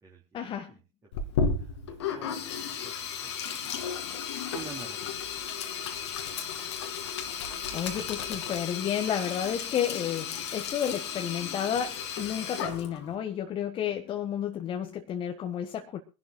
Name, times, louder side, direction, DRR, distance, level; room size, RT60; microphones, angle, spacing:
voice 1, 0.3-0.7 7.7-16.0, left 9 dB, 35° left, 5 dB, 1.5 m, -31 dB
Sink (filling or washing), 1.1-13.2, left 6 dB, 65° left, 2.3 m, -34 dB
voice 2, 1.2-1.7 2.0-2.9 3.2-3.7 4.5-5.3 7.7-8.0, right 5 dB, 20° right, -1 dB, 3.3 m, -48 dB
24.5 x 11.5 x 2.2 m, 0.31 s
figure-of-eight pair, 75°, 16 cm